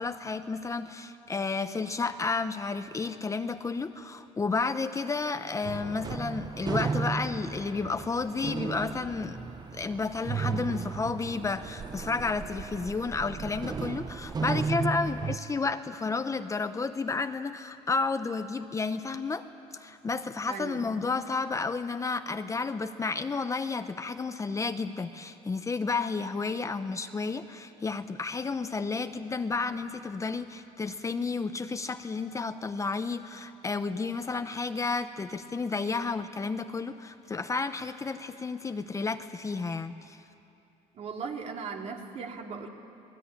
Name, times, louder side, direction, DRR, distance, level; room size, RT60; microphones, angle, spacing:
voice 1, 0.0-9.4 9.7-19.5 19.7-40.2, left 4 dB, 20° left, 9 dB, 0.8 m, -31 dB
sound 1, 5.6-15.4, right 5 dB, 30° right, 0.9 m, -34 dB
voice 2, 20.5-20.9 41.0-42.7, right 5 dB, 50° right, 2 dB, 2.9 m, -37 dB
27.0 x 20.0 x 9.8 m, 2.8 s
cardioid pair, 110°, 15 cm